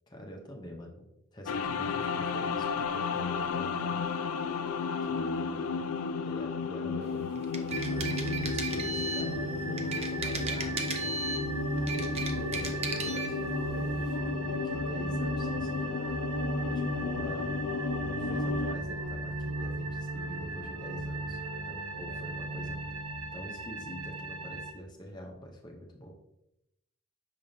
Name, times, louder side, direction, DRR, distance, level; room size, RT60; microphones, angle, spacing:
voice 1, 0.1-4.0 5.0-5.9 6.2-11.1 11.8-16.0 16.6-17.5 18.0-21.4 21.7-22.9 23.3-26.1, equal, 20° left, 1 dB, 0.7 m, -45 dB
sound 1, 1.5-18.8, left 5 dB, 85° left, 0.3 m, -34 dB
sound 2, 7.4-9.3 9.8-11.5 11.8-13.3, right 4 dB, 30° right, 0.4 m, -36 dB
sound 3, 7.7-24.7, right 2 dB, 85° right, 0.6 m, -36 dB
5.8 x 3.5 x 2.7 m, 0.86 s
head